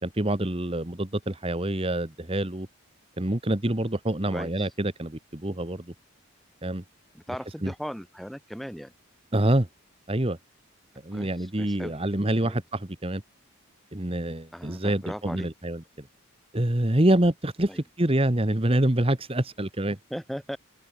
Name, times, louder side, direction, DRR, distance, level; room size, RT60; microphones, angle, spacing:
voice 1, 0.0-2.7 3.2-5.9 6.6-6.8 7.6-7.7 9.3-9.7 10.1-10.4 11.0-13.2 13.9-15.8 16.5-20.0, right 1 dB, 25° right, 1.4 m, -26 dB
voice 2, 7.1-8.9 11.1-11.3 11.6-11.9 12.4-12.6 14.5-15.5 17.7-17.8 20.1-20.6, equal, ahead, 4.7 m, -37 dB
head